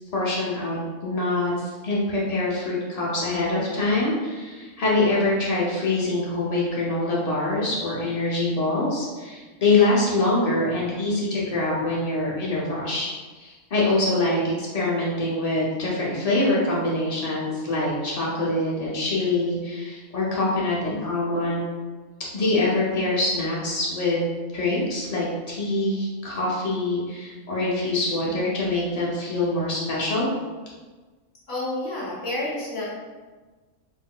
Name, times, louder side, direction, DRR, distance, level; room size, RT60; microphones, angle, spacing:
voice 1, 0.1-13.1 13.3-21.6 22.3-24.2 24.5-30.3, left 2 dB, 85° left, -6 dB, 0.3 m, -24 dB
voice 2, 31.5-32.8, left 1 dB, 45° left, -7 dB, 1.3 m, -29 dB
3.6 x 2.6 x 2.2 m, 1.3 s
omnidirectional pair, 1.5 m